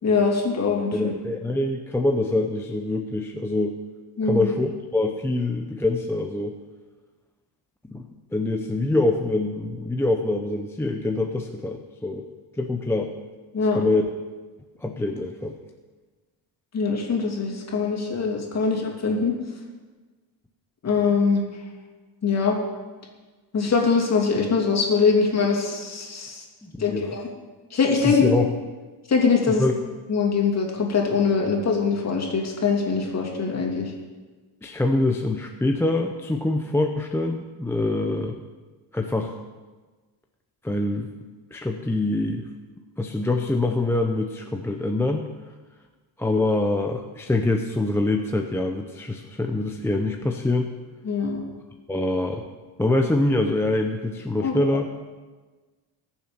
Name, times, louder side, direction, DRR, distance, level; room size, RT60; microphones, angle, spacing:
voice 1, 0.0-1.1 4.2-4.5 13.5-13.8 16.7-19.3 20.8-21.4 22.2-22.6 23.5-26.4 26.8-27.2 27.7-28.3 29.1-29.6 30.1-33.9 51.0-51.4 54.4-54.6, left 5 dB, 35° left, 0 dB, 2.8 m, -22 dB
voice 2, 0.9-3.8 4.2-6.6 7.9-8.0 8.3-12.2 12.5-13.1 13.7-14.0 14.8-15.5 26.6-27.2 28.0-28.5 29.5-29.8 34.6-38.4 38.9-39.4 40.6-41.1 41.5-42.5 43.0-45.3 46.2-50.7 51.9-52.4 52.8-54.9, left 2 dB, 5° left, 2 dB, 0.6 m, -25 dB
20.5 x 7.3 x 5.2 m, 1.3 s
cardioid pair, 140°, 45 cm